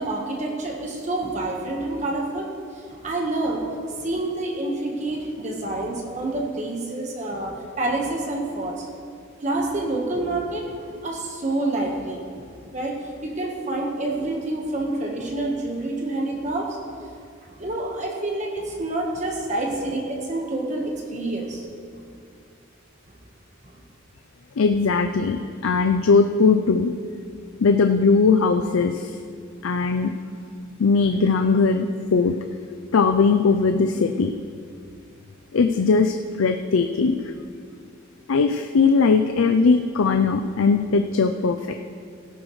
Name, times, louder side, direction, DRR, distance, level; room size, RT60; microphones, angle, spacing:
voice 1, 0.0-2.5 2.7-3.7 4.0-8.9 9.4-12.5 12.7-16.7 17.5-21.7 23.7-23.8, right 2 dB, 35° right, -1 dB, 1.3 m, -28 dB
voice 2, 24.6-25.4 25.6-26.9 27.6-29.1 29.6-30.1 30.8-32.3 32.9-34.3 35.5-37.2 38.3-41.7, left 4 dB, 80° left, 7 dB, 0.4 m, -19 dB
16.5 x 11.0 x 3.2 m, 2.3 s
head